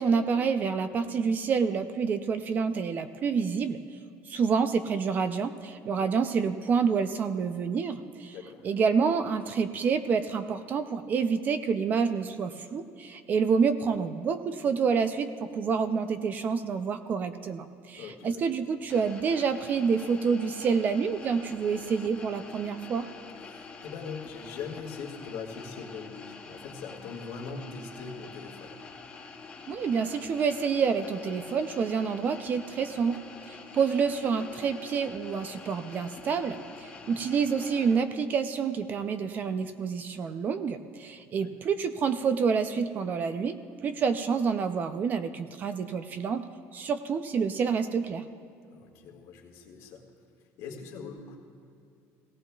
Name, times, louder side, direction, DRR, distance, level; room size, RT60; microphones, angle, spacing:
voice 1, 0.0-3.8 4.3-8.3 8.6-23.1 29.7-33.2 33.5-43.6 43.8-46.4 46.7-48.2, right 6 dB, 30° right, 10 dB, 0.4 m, -28 dB
voice 2, 8.3-8.6 18.0-18.5 23.4-28.9 36.9-37.2 41.1-41.5 48.7-50.0 50.4-51.4, left 5 dB, 60° left, 0 dB, 1.8 m, -42 dB
sound 1, 18.9-38.0, left 4 dB, 15° left, 0.8 m, -46 dB
18.5 x 16.5 x 2.3 m, 2.5 s
cardioid pair, 175°, 6 cm